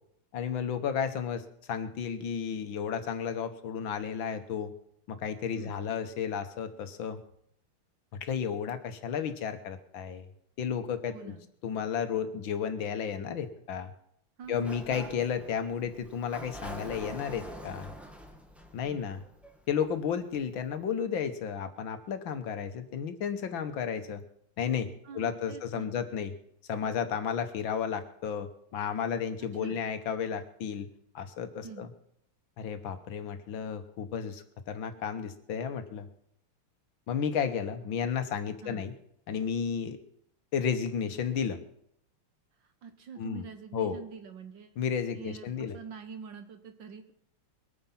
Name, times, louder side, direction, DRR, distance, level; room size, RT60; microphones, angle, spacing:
voice 1, 0.3-4.7 5.1-7.2 8.2-10.3 10.6-11.3 11.6-13.9 14.5-17.9 18.7-19.2 19.7-24.2 24.6-26.3 26.7-30.9 31.2-31.9 32.6-36.1 37.1-38.9 39.3-40.0 40.5-41.6 43.2-43.5 43.7-44.0 44.8-45.8, left 7 dB, 70° left, 9 dB, 1.8 m, -33 dB
voice 2, 11.1-11.5 14.4-14.7 18.8-19.2 25.0-25.9 29.5-29.8 31.6-31.8 38.6-38.9 42.6-44.7 45.1-47.1, right 6 dB, 65° right, 8 dB, 1.6 m, -45 dB
Sliding door, 14.4-20.1, right 1 dB, ahead, 1.3 m, -45 dB
22.0 x 9.2 x 5.8 m, 0.73 s
omnidirectional pair, 2.3 m